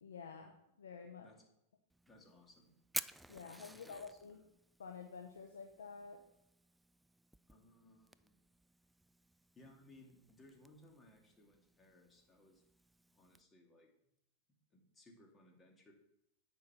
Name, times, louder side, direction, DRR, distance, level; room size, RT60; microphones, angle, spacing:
voice 1, 0.0-1.3 3.3-4.4 4.8-6.2, left 5 dB, 85° left, 3 dB, 1.0 m, -50 dB
Fire, 1.9-13.4, right 2 dB, 5° right, 0.3 m, -52 dB
voice 2, 2.1-2.7 3.7-4.4 7.5-8.3 9.6-12.6 13.1-13.9 14.7-15.9, left 1 dB, 20° left, 2 dB, 2.5 m, -63 dB
9.1 x 5.5 x 5.8 m, 0.80 s
hypercardioid pair, 110°, 0 cm